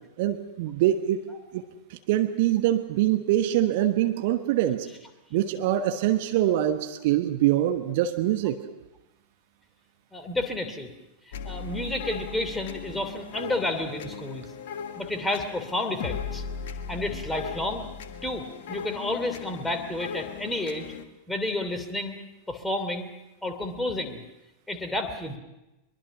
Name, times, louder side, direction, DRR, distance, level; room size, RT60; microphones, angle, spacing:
voice 1, 0.2-1.2 1.5-1.6 1.9-4.9 5.3-8.6, right 13 dB, 50° right, 8 dB, 1.2 m, -24 dB
voice 2, 10.1-10.9 11.3-14.5 15.0-16.4 16.9-17.9 18.2-20.9 21.3-22.2 22.5-23.1 23.4-24.2 24.7-25.4, left 1 dB, 5° left, 6 dB, 2.9 m, -31 dB
sound 1, 11.3-21.0, left 6 dB, 55° left, 1.5 m, -37 dB
23.0 x 23.0 x 6.0 m, 0.98 s
figure-of-eight pair, 90°, 0 cm